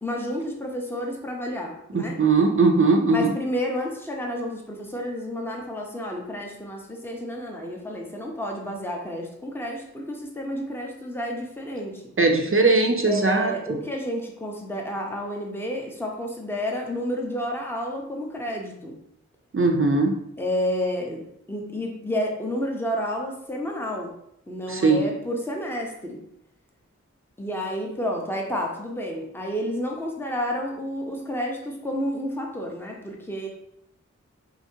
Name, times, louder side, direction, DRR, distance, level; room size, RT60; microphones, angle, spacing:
voice 1, 0.0-2.2 3.1-12.0 13.1-18.9 20.4-21.2 21.5-24.1 24.5-26.2 27.4-33.5, equal, 10° left, 0 dB, 0.8 m, -30 dB
voice 2, 1.9-3.3 12.2-13.8 19.5-20.1 24.7-25.0, right 3 dB, 45° right, 3 dB, 0.5 m, -20 dB
5.0 x 2.8 x 2.7 m, 0.77 s
wide cardioid pair, 50°, 29 cm